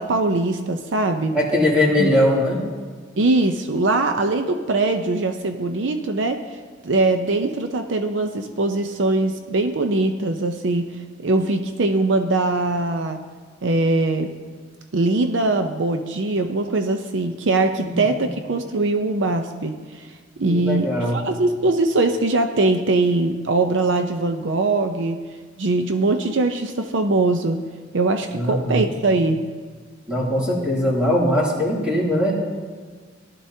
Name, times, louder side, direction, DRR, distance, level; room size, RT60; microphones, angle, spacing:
voice 1, 0.0-1.4 2.0-2.1 3.2-6.6 6.8-10.9 11.2-13.2 13.6-14.3 14.9-20.1 20.4-25.2 25.6-27.6 27.9-29.4, right 2 dB, 70° right, 7 dB, 0.6 m, -21 dB
voice 2, 1.3-2.6 17.8-18.3 20.5-21.2 28.3-28.8 30.1-32.3, left 1 dB, 5° right, -5 dB, 2.7 m, -21 dB
18.0 x 12.0 x 2.8 m, 1.5 s
head